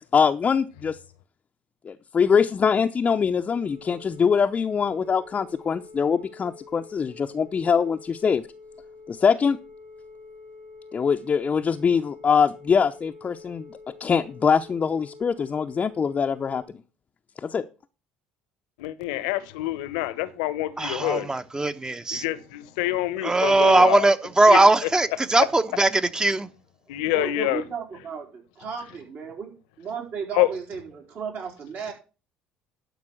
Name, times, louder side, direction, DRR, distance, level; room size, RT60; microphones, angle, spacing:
voice 1, 0.1-1.0 1.8-8.5 9.1-9.6 10.9-13.7 14.0-16.8 17.4-17.7, left 6 dB, 35° left, 0.7 m, -23 dB
Telephone, 3.5-16.7, left 3 dB, 85° right, 3.1 m, -47 dB
voice 2, 18.8-21.4 22.1-24.1 24.5-24.9 26.9-27.6 30.3-30.5, left 16 dB, 75° left, 1.0 m, -26 dB
voice 3, 20.8-22.2 23.2-26.5, right 2 dB, 20° right, 1.0 m, -20 dB
voice 4, 27.1-29.5 29.8-31.9, right 6 dB, 55° right, 4.1 m, -34 dB
12.0 x 5.3 x 6.4 m
hypercardioid pair, 60°, 4 cm